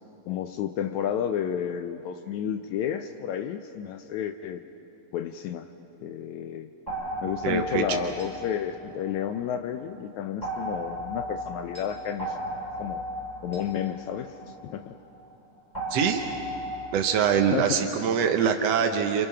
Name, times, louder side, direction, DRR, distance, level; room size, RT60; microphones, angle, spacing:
voice 1, 0.3-4.6 5.1-5.7 6.0-6.7 7.2-13.1 13.4-14.4 14.6-15.0 17.5-17.8, left 9 dB, 90° left, 8 dB, 1.6 m, -31 dB
sound 1, 6.9-9.6 10.4-15.0 15.7-17.5, equal, 10° left, 6.4 m, -36 dB
voice 2, 7.4-8.0 15.9-16.3 16.9-19.3, right 7 dB, 75° right, 4 dB, 1.5 m, -24 dB
28.0 x 27.5 x 5.7 m, 2.8 s
omnidirectional pair, 4.2 m